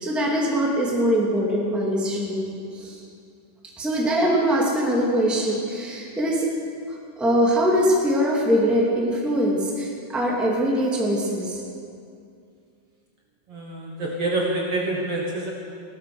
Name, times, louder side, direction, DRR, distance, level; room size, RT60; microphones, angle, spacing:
voice 1, 0.0-3.0 3.8-6.5 6.9-11.6, equal, ahead, -3 dB, 1.8 m, -22 dB
voice 2, 13.5-15.5, right 2 dB, 55° right, -1 dB, 2.1 m, -27 dB
17.5 x 13.0 x 6.2 m, 2.4 s
omnidirectional pair, 3.7 m